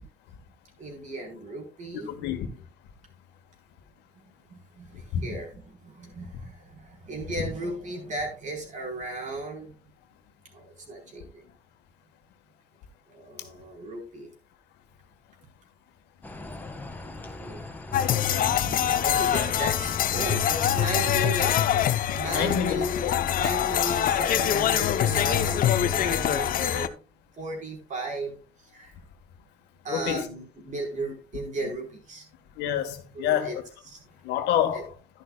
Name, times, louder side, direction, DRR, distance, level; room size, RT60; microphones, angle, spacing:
voice 1, 0.8-2.1 4.2-9.7 10.5-11.4 13.1-14.3 17.4-17.7 19.0-26.9 27.4-28.9 29.8-32.3 33.1-33.6 33.9-34.0 34.7-34.8, right 2 dB, 45° right, 4.8 m, -36 dB
voice 2, 2.1-2.5 5.1-5.2 18.6-18.7 22.3-23.1 29.9-30.3 32.6-33.5 34.2-34.9, left 10 dB, 85° left, 1.6 m, -27 dB
sound 1, 16.2-21.3, left 2 dB, 10° left, 1.8 m, -41 dB
sound 2, 17.9-26.9, left 10 dB, 55° left, 0.9 m, -24 dB
11.5 x 11.0 x 2.4 m
cardioid pair, 110°, 17 cm